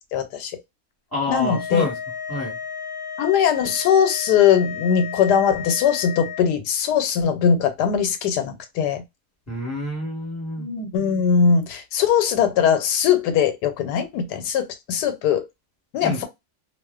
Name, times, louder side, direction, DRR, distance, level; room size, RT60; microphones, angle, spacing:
voice 1, 0.1-0.5 1.3-1.9 3.2-9.0 10.6-15.4 15.9-16.2, left 7 dB, 90° left, 1.2 m, -20 dB
voice 2, 1.1-2.0 2.3-2.6 9.5-10.7 16.0-16.2, left 1 dB, 10° left, 1.1 m, -28 dB
sound 1, 1.3-6.5, left 7 dB, 70° left, 0.9 m, -33 dB
2.4 x 2.4 x 2.2 m
omnidirectional pair, 1.7 m